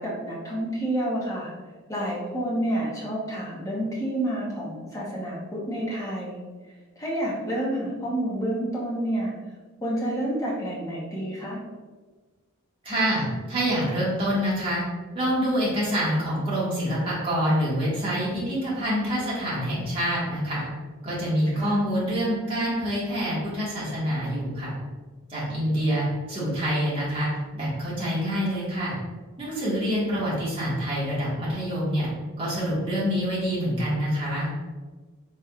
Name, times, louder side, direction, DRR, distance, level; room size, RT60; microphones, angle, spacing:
voice 1, 0.0-1.5 1.9-6.4 7.0-9.3 9.8-11.6 21.5-21.8, right 1 dB, 15° left, -5 dB, 0.9 m, -29 dB
voice 2, 12.8-14.8 15.1-20.6 21.0-24.7 25.3-28.9 29.4-32.1 32.4-34.5, equal, 25° right, -8 dB, 1.4 m, -26 dB
4.0 x 3.6 x 2.3 m, 1.3 s
head